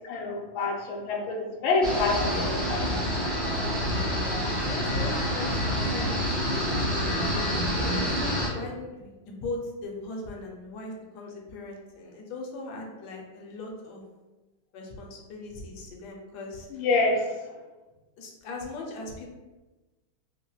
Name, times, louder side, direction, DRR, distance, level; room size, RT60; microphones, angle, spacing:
voice 1, 0.1-2.8 16.7-17.3, left 3 dB, 85° left, 0 dB, 1.4 m, -27 dB
sound 1, 1.8-8.5, equal, ahead, 0.4 m, -27 dB
voice 2, 3.8-4.2 4.6-8.1 8.5-14.0 14.7-16.8 18.2-19.3, left 2 dB, 70° left, 0 dB, 1.1 m, -39 dB
4.0 x 2.1 x 2.3 m, 1.2 s
omnidirectional pair, 2.1 m